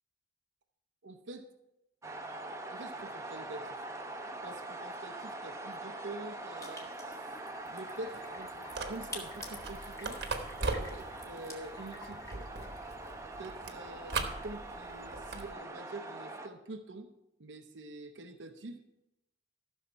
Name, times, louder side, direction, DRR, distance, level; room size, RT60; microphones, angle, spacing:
voice 1, 1.0-1.5 2.7-3.8 4.4-7.4 7.7-10.2 10.6-12.5 13.4-17.1 17.4-18.8, right 2 dB, 80° right, 6 dB, 0.7 m, -46 dB
sound 1, 2.0-16.5, right 2 dB, 15° right, 0.7 m, -44 dB
sound 2, 6.6-13.2, left 2 dB, 20° left, 1.7 m, -49 dB
sound 3, 8.7-15.5, right 3 dB, 60° right, 1.1 m, -40 dB
14.0 x 6.4 x 4.5 m, 0.90 s
head